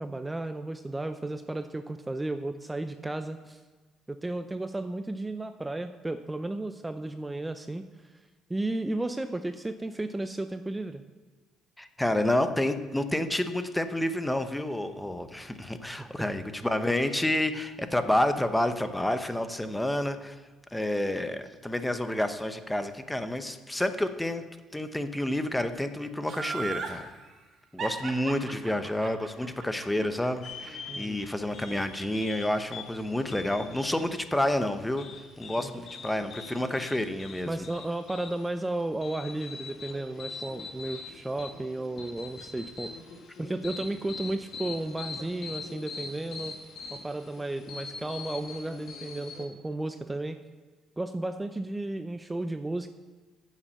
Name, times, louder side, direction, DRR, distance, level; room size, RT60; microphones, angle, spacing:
voice 1, 0.0-3.6 4.1-7.8 8.5-11.0 16.0-16.3 30.9-31.2 35.6-35.8 37.5-42.9 43.4-46.5 46.9-50.4 51.0-52.9, right 2 dB, 15° right, 9 dB, 0.6 m, -33 dB
voice 2, 11.8-20.4 20.7-24.4 24.7-27.1 27.7-35.1 35.4-37.6, left 1 dB, 10° left, 9 dB, 0.9 m, -29 dB
Laughter, 26.3-27.0 27.8-30.9 31.2-31.3, right 6 dB, 55° right, 1.8 m, -36 dB
sound 1, 30.4-49.4, left 4 dB, 60° left, 1.7 m, -43 dB
8.4 x 7.4 x 6.6 m, 1.3 s
supercardioid pair, 65°, 0 cm